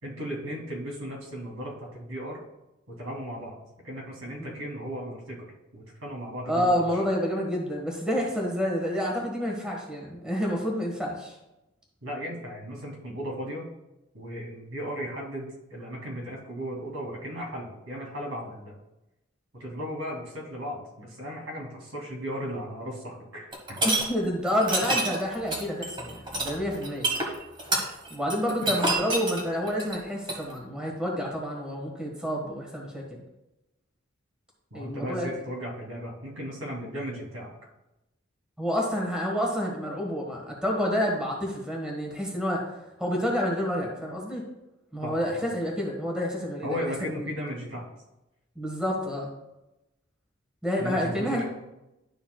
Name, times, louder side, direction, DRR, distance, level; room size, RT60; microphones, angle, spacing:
voice 1, 0.0-2.4 2.9-3.6 3.8-6.8 12.0-13.7 14.1-18.7 19.5-23.8 28.6-28.8 34.7-37.5 45.0-45.5 46.6-47.9 50.8-51.4, equal, 85° right, -2 dB, 2.8 m, -36 dB
voice 2, 6.4-11.3 23.8-27.1 28.1-33.0 34.7-35.4 38.6-42.6 43.0-44.4 44.9-46.9 47.2-47.3 48.5-49.3 50.6-51.4, equal, 5° right, -1 dB, 1.5 m, -29 dB
sound 1, 23.5-24.0 24.6-30.4, right 2 dB, 25° right, 1.5 m, -27 dB
11.5 x 7.0 x 2.3 m, 0.95 s
head